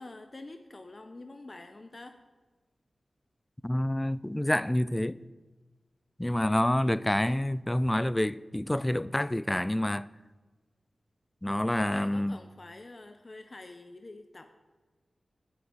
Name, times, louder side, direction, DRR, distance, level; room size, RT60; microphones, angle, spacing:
voice 1, 0.0-2.2 11.7-14.5, left 2 dB, 40° left, 0.7 m, -47 dB
voice 2, 3.6-5.2 6.2-10.1 11.4-12.4, left 1 dB, 15° left, 0.3 m, -28 dB
9.5 x 6.5 x 8.0 m
wide cardioid pair, 75°, 0 cm